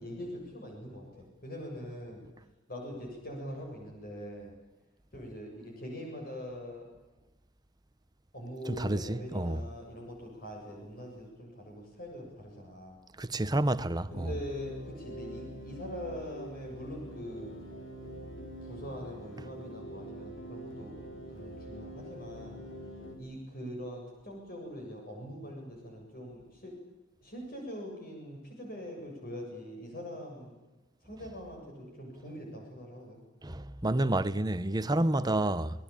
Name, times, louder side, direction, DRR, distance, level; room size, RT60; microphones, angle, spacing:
voice 1, 0.0-2.2 2.7-4.5 5.1-6.9 8.3-13.0 14.1-17.5 18.6-20.9 21.3-22.6 23.2-26.7 27.2-30.5 31.0-33.2 35.2-35.5, equal, 50° left, 7.7 m, -43 dB
voice 2, 8.6-9.6 13.2-14.3 33.4-35.8, right 1 dB, 20° right, 1.0 m, -29 dB
sound 1, 14.1-23.2, equal, 75° left, 5.9 m, -45 dB
29.0 x 19.5 x 8.8 m
head